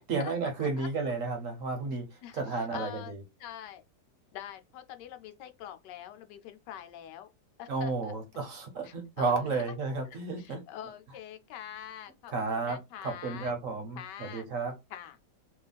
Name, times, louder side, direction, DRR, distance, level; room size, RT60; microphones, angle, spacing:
voice 1, 0.0-3.2 7.7-10.6 12.3-14.7, right 4 dB, 55° right, 1.1 m, -32 dB
voice 2, 2.2-3.1 3.4-3.8 4.3-7.3 7.6-8.1 8.8-9.7 10.4-13.5 14.0-14.5 14.9-15.2, left 11 dB, 90° left, 1.2 m, -44 dB
3.0 x 2.3 x 4.0 m
omnidirectional pair, 1.8 m